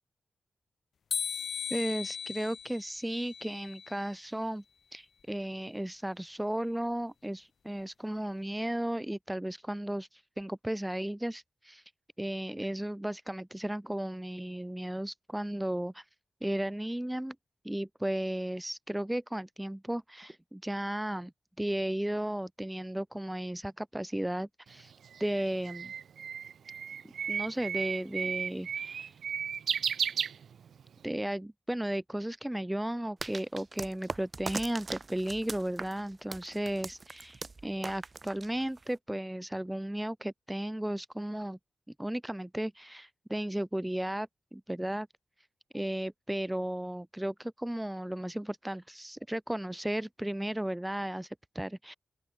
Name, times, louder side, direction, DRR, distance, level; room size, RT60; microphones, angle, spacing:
sound 1, 1.1-4.2, left 7 dB, 70° left, 1.0 m, -38 dB
voice 1, 1.7-4.6 4.9-11.8 12.2-16.0 16.4-17.4 17.6-21.3 21.6-24.9 25.2-25.9 27.3-29.1 31.0-41.6 42.0-45.1 45.7-51.9, right 1 dB, 5° right, 1.0 m, -35 dB
Bird, 24.7-30.9, right 7 dB, 80° right, 0.4 m, -34 dB
sound 2, 33.2-39.0, right 3 dB, 30° right, 2.0 m, -41 dB
open air
wide cardioid pair, 115°, 0 cm